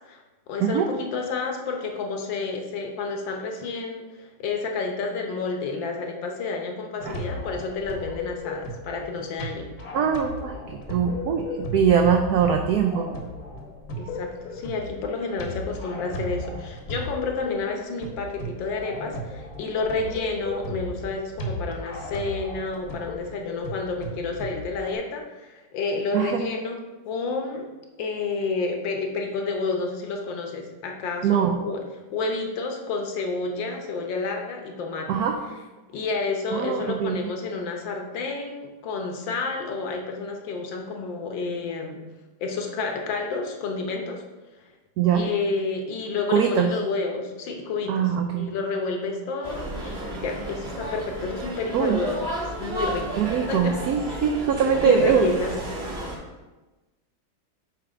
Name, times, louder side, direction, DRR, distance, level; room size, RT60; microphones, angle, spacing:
voice 1, 0.5-9.7 14.0-26.8 27.1-27.7 28.0-31.8 32.1-35.2 35.9-42.0 42.4-44.2 45.1-48.1 48.3-52.2 52.6-53.1 53.5-53.8 54.1-54.2 54.8-55.5, left 4 dB, 70° left, 3 dB, 1.6 m, -30 dB
sound 1, 7.0-24.9, left 1 dB, 55° left, 1.3 m, -35 dB
voice 2, 9.9-13.1 26.1-26.4 31.2-31.6 35.1-35.4 36.5-37.3 45.0-45.3 46.3-46.7 47.9-48.5 51.7-52.0 53.1-55.3, right 7 dB, 85° right, 5 dB, 0.8 m, -22 dB
sound 2, 49.4-56.2, right 1 dB, 35° right, 1.4 m, -33 dB
7.5 x 3.4 x 4.9 m, 1.1 s
omnidirectional pair, 2.2 m